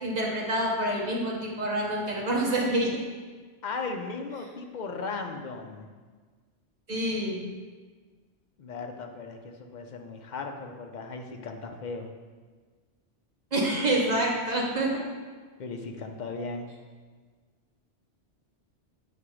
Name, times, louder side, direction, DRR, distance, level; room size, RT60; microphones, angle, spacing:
voice 1, 0.0-2.9 6.9-7.4 13.5-15.1, right 1 dB, 40° right, -2 dB, 0.9 m, -27 dB
voice 2, 3.6-5.9 8.6-12.1 15.6-16.7, left 4 dB, 55° left, 4 dB, 0.5 m, -37 dB
7.6 x 2.9 x 4.8 m, 1.5 s
omnidirectional pair, 1.2 m